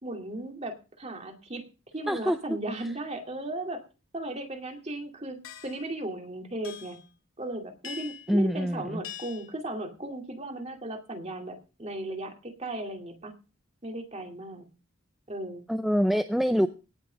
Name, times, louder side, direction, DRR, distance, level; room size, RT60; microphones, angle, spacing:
voice 1, 0.0-1.6 1.9-3.8 4.1-7.0 7.4-13.3 13.8-14.7 15.3-15.7, right 1 dB, 30° right, 3 dB, 2.4 m, -36 dB
voice 2, 2.1-2.4 8.3-9.0 15.7-16.7, equal, ahead, 8 dB, 0.5 m, -25 dB
sound 1, 5.4-5.8 6.6-7.0 7.8-8.3 9.0-9.5, left 8 dB, 85° left, 2.0 m, -42 dB
18.0 x 6.3 x 5.1 m, 0.32 s
head